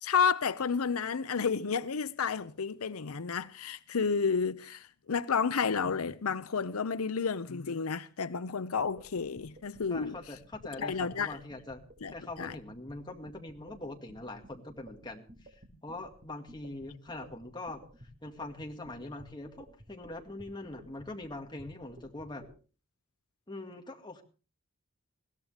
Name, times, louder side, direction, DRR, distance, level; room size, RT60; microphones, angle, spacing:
voice 1, 0.0-10.2 10.8-11.4 12.0-12.1 12.4-12.6, left 5 dB, 90° left, 0.7 m, -31 dB
sound 1, 8.8-22.5, equal, 45° right, 4.5 m, -53 dB
voice 2, 9.9-11.8 12.1-17.8 18.2-22.5 23.5-24.2, left 2 dB, 20° left, 2.1 m, -43 dB
21.0 x 16.5 x 3.3 m
head